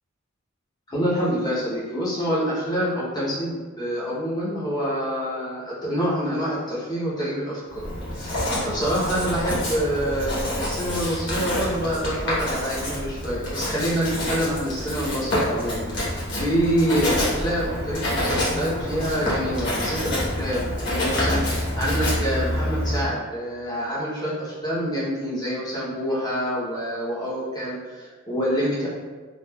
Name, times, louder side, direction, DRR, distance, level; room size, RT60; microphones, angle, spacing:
voice 1, 0.9-7.9 8.2-28.9, equal, 20° left, -8 dB, 0.7 m, -26 dB
Writing, 7.7-23.1, left 1 dB, 60° left, 1.0 m, -27 dB
3.3 x 2.3 x 2.2 m, 1.4 s
head